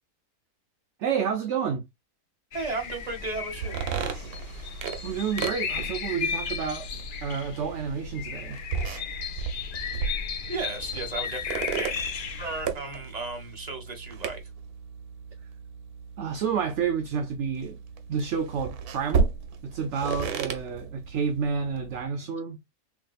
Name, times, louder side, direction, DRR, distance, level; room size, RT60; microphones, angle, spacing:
voice 1, 1.0-1.8 5.0-6.9 7.2-8.6 16.2-17.8 18.1-19.3 19.6-22.6, right 6 dB, 60° right, 0.8 m, -29 dB
sound 1, 2.5-12.6, left 7 dB, 65° left, 0.5 m, -35 dB
voice 2, 2.5-3.8 10.5-12.0 12.4-14.4 22.2-22.3, right 3 dB, 30° right, 1.5 m, -34 dB
sound 2, 3.5-22.0, right 6 dB, 80° right, 1.3 m, -35 dB
5.9 x 2.7 x 2.3 m
omnidirectional pair, 1.6 m